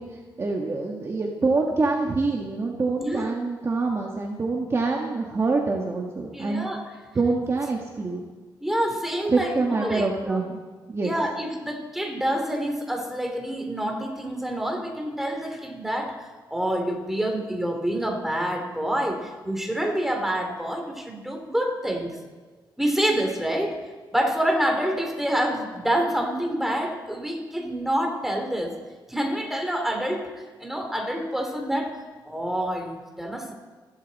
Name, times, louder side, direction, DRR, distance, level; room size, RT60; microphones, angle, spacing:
voice 1, 0.4-6.7 7.1-8.2 9.3-10.6 10.9-11.1, right 3 dB, 35° right, 0 dB, 1.6 m, -25 dB
voice 2, 3.0-3.3 6.3-6.9 8.6-10.4 11.0-16.2 16.5-22.2 22.8-23.7 24.1-28.7 29.1-32.0 32.2-33.5, right 1 dB, 5° right, 3 dB, 3.0 m, -27 dB
28.0 x 11.5 x 4.2 m, 1.4 s
cardioid pair, 110°, 8 cm